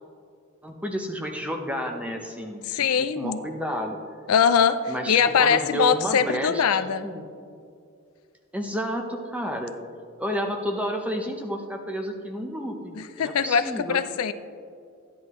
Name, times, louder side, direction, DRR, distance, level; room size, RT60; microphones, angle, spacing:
voice 1, 0.6-4.0 4.9-7.2 8.5-9.7 10.2-14.0, equal, 5° right, 2 dB, 0.8 m, -31 dB
voice 2, 2.7-3.4 4.3-7.1 13.0-14.3, left 7 dB, 80° left, 11 dB, 0.4 m, -22 dB
14.0 x 10.0 x 3.1 m, 2.3 s
head